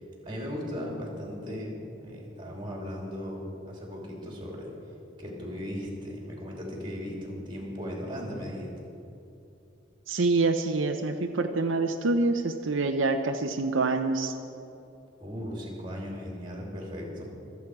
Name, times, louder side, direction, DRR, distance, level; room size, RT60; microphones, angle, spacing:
voice 1, 0.2-4.7 5.2-8.7 15.2-17.2, equal, 25° right, -2 dB, 2.9 m, -37 dB
voice 2, 10.1-14.3, right 3 dB, 80° right, 5 dB, 0.7 m, -26 dB
25.0 x 8.3 x 4.8 m, 2.8 s
head